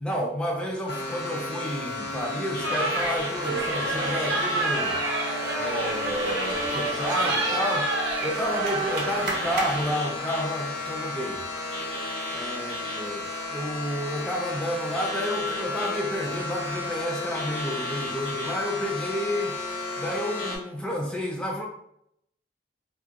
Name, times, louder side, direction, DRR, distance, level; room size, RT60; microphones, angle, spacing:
voice 1, 0.0-5.0 5.5-7.9 8.2-11.4 12.3-19.6 20.0-21.7, equal, 5° left, -2 dB, 0.4 m, -30 dB
sound 1, 0.9-20.6, left 2 dB, 55° left, 0.8 m, -33 dB
sound 2, 2.6-9.9, right 2 dB, 65° right, 0.6 m, -29 dB
2.3 x 2.1 x 2.7 m, 0.74 s
head